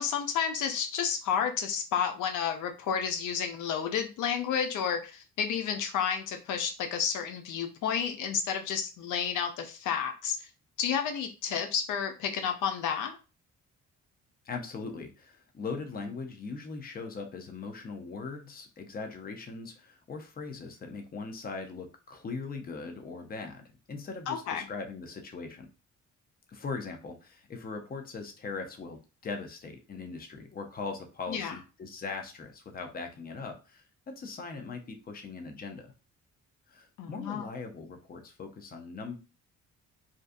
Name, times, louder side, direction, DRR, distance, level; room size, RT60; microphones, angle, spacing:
voice 1, 0.0-10.4 10.8-13.2 24.3-24.7 31.3-31.5 37.0-37.4, left 7 dB, 85° left, 5 dB, 0.5 m, -31 dB
voice 2, 14.4-25.7 26.5-35.9 36.7-39.2, left 4 dB, 30° left, 5 dB, 0.6 m, -40 dB
2.5 x 2.2 x 2.5 m, 0.31 s
cardioid pair, 90°, 30 cm